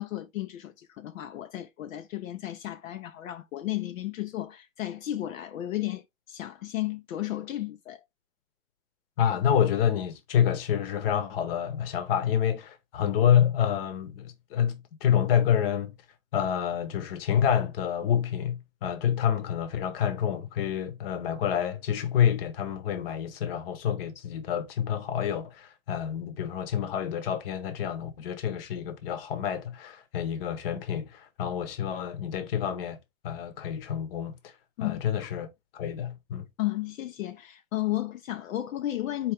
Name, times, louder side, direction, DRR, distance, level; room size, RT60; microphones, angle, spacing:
voice 1, 0.0-8.0 34.8-35.3 36.6-39.3, left 15 dB, 75° left, 0.6 m, -33 dB
voice 2, 9.2-15.9 16.3-33.0 33.2-34.5 34.8-35.5 35.7-36.4, left 9 dB, 45° left, 0.9 m, -28 dB
4.6 x 2.9 x 3.4 m
hypercardioid pair, 145°, 41 cm